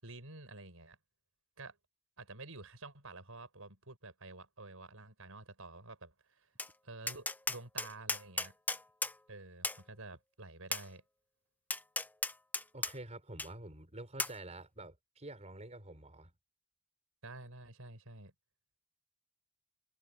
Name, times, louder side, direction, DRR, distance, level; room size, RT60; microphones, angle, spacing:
voice 1, 0.0-1.0 1.6-1.8 2.2-6.5 6.8-8.5 9.3-11.0 17.2-18.3, right 2 dB, 75° right, 6.8 m, -50 dB
Tap, 6.6-6.7 7.1-9.2 9.6-9.8 10.7-10.9 11.7-12.9 13.4-13.5 14.2-14.4, left 3 dB, 10° left, 0.7 m, -35 dB
voice 2, 12.7-16.3, right 2 dB, 35° right, 4.9 m, -48 dB
head